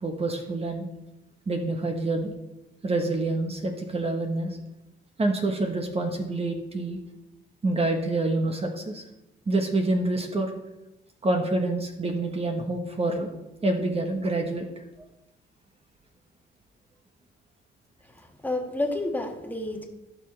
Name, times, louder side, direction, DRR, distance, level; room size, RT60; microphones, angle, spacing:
voice 1, 0.0-0.9 1.5-2.3 2.8-4.6 5.2-7.0 7.6-9.0 9.5-10.5 11.2-13.3 13.6-14.7 15.0-15.1, right 2 dB, 30° right, 3 dB, 1.2 m, -27 dB
voice 2, 18.0-19.8, left 2 dB, 10° left, 2 dB, 1.6 m, -30 dB
16.0 x 5.8 x 3.3 m, 0.97 s
cardioid pair, 90°, 20 cm